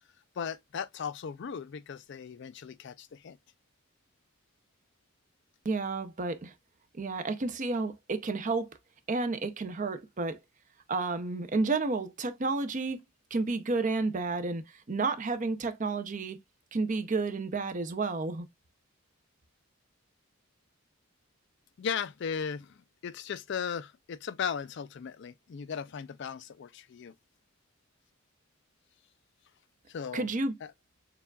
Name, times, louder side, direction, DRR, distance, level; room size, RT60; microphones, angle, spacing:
voice 1, 0.4-3.4 21.8-22.8 23.0-27.1 29.9-30.3 30.6-30.7, left 7 dB, 55° left, 0.4 m, -37 dB
voice 2, 5.6-6.5 6.9-8.7 9.1-10.4 10.9-13.0 13.3-16.4 16.7-18.5 30.1-30.5, right 3 dB, 35° right, 0.5 m, -31 dB
6.8 x 2.4 x 2.2 m
head